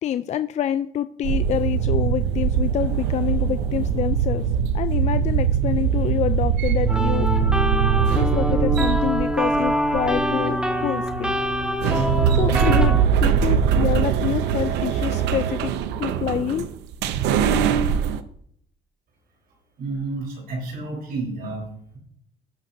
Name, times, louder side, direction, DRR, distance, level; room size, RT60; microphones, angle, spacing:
voice 1, 0.0-4.5 4.7-7.3 8.1-10.6 10.8-11.3 11.9-15.7 16.0-16.7, left 10 dB, 40° left, 12 dB, 0.4 m, -27 dB
sound 1, 1.2-18.2, right 8 dB, 90° right, 0.7 m, -22 dB
sound 2, 6.9-13.0, equal, 5° right, 1.2 m, -24 dB
voice 2, 19.8-22.0, right 3 dB, 65° right, 0 dB, 4.0 m, -31 dB
17.5 x 6.5 x 2.7 m, 0.67 s
cardioid pair, 110°, 17 cm